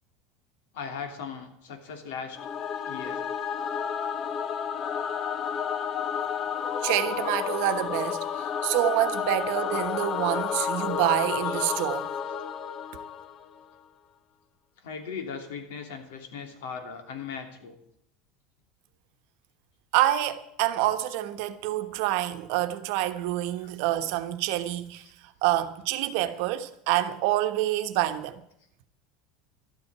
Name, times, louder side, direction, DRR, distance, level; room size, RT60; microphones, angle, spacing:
voice 1, 0.7-2.4 2.8-3.2 14.8-17.8 23.6-23.9, left 6 dB, 90° left, 3.1 m, -38 dB
Singing / Musical instrument, 2.3-13.6, left 7 dB, 30° left, 0.7 m, -31 dB
voice 2, 6.8-12.1 19.9-25.0 25.4-28.4, right 14 dB, 60° right, 1.1 m, -27 dB
12.5 x 8.6 x 9.6 m
cardioid pair, 165°, 0 cm